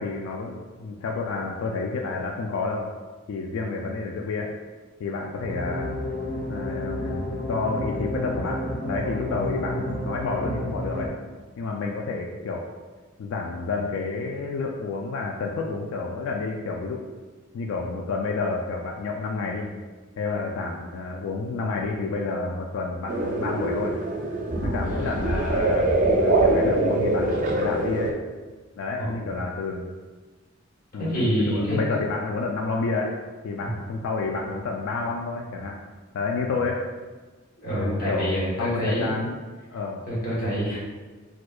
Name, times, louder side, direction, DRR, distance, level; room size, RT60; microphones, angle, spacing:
voice 1, 0.0-2.9 3.3-4.5 5.0-5.9 6.5-7.2 7.5-11.1 11.6-12.7 13.2-17.1 17.5-19.7 20.2-24.0 24.6-28.1 28.8-29.8 30.9-33.1 33.4-35.8 36.1-36.9 37.7-39.4 39.7-40.0, left 3 dB, 80° left, 0 dB, 0.3 m, -29 dB
sound 1, 5.4-11.1, left 1 dB, 60° left, 0.9 m, -31 dB
sound 2, 23.1-28.1, right 2 dB, 40° right, 0.4 m, -23 dB
voice 2, 29.0-29.3 31.0-31.8 33.6-33.7 37.6-39.2 40.1-40.8, equal, 45° left, -7 dB, 1.2 m, -27 dB
4.2 x 2.3 x 2.3 m, 1.3 s
head